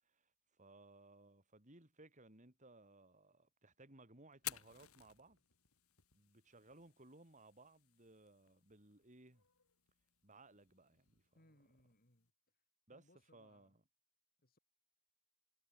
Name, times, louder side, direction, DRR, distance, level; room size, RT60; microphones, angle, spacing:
voice 1, 0.0-5.4 6.1-9.4 10.2-11.2 12.9-13.0 13.3-13.8, right 2 dB, 35° right, 3.7 m, -62 dB
Fire, 4.3-12.3, left 13 dB, 85° left, 3.7 m, -55 dB
voice 2, 11.3-12.3 12.9-13.7 14.4-14.6, left 1 dB, 45° left, 4.4 m, -70 dB
head